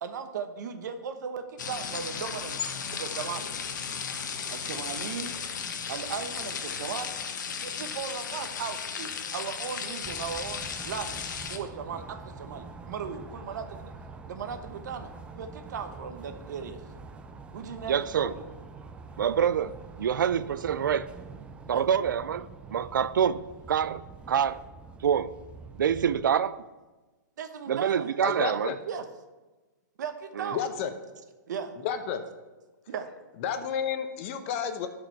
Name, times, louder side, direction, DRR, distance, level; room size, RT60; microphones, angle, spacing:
voice 1, 0.0-2.6 2.9-3.5 4.5-5.3 5.9-7.2 7.6-11.2 11.5-13.9 14.3-16.8 17.5-18.4 20.2-20.3 21.7-21.8 27.4-28.1 28.8-29.1 30.0-30.6 31.5-31.7 32.9-33.1, right 6 dB, 65° right, 1.0 m, -37 dB
sound 1, 1.6-11.6, left 6 dB, 70° left, 1.0 m, -35 dB
sound 2, 10.0-26.4, right 4 dB, 10° right, 0.4 m, -45 dB
voice 2, 17.9-18.3 19.2-21.1 21.7-24.6 25.0-25.3 25.8-26.6 27.7-28.7 30.4-30.5, right 8 dB, 85° right, 0.4 m, -26 dB
voice 3, 28.2-28.8 30.5-30.9 31.8-32.2 33.4-34.9, left 8 dB, 40° left, 0.9 m, -31 dB
11.5 x 5.0 x 4.6 m
hypercardioid pair, 140°, 10 cm